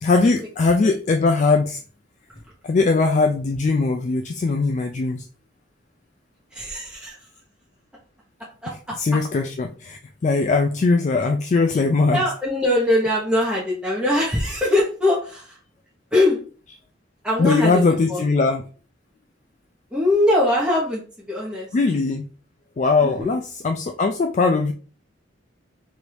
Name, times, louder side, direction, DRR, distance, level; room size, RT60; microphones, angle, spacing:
voice 1, 0.0-1.8 2.6-5.2 8.7-12.3 17.4-18.7 21.7-22.2 22.8-24.7, left 3 dB, 40° left, 5 dB, 0.3 m, -20 dB
voice 2, 6.5-7.3 8.6-9.2 12.1-15.6 16.1-16.4 17.2-17.8 18.1-18.2 19.9-21.7 23.0-23.3, left 1 dB, 5° right, -6 dB, 0.9 m, -22 dB
3.4 x 2.6 x 4.5 m, 0.39 s
head